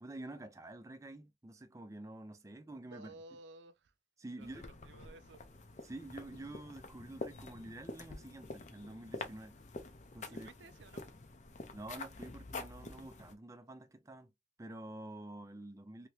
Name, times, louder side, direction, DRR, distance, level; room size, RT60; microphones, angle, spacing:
voice 1, 0.0-3.4 4.2-4.7 5.8-9.6 10.1-10.5 11.7-14.3 14.6-16.1, right 2 dB, 20° right, 0.4 m, -48 dB
voice 2, 2.5-3.9 4.4-5.4 10.3-11.2, right 2 dB, 80° right, 0.4 m, -56 dB
sound 1, 4.4-13.3, left 3 dB, 40° left, 0.6 m, -47 dB
2.9 x 2.8 x 3.0 m
head